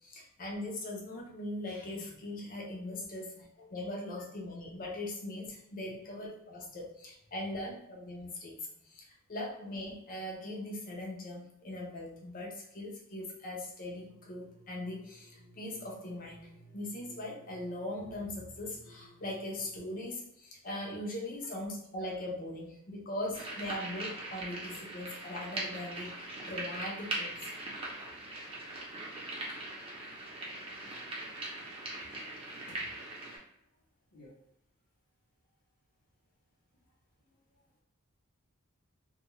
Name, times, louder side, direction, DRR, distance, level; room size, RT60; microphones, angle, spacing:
voice 1, 0.0-8.6 8.8-27.4, left 1 dB, 40° left, -1 dB, 0.6 m, -40 dB
sound 1, 13.9-19.8, right 2 dB, 55° right, 0.9 m, -58 dB
sound 2, 23.3-33.4, right 2 dB, 25° right, 0.6 m, -41 dB
voice 2, 32.6-32.9 34.1-34.4 36.8-36.9 37.2-37.7, left 1 dB, 75° left, -7 dB, 0.8 m, -57 dB
2.3 x 2.2 x 3.0 m, 0.79 s
head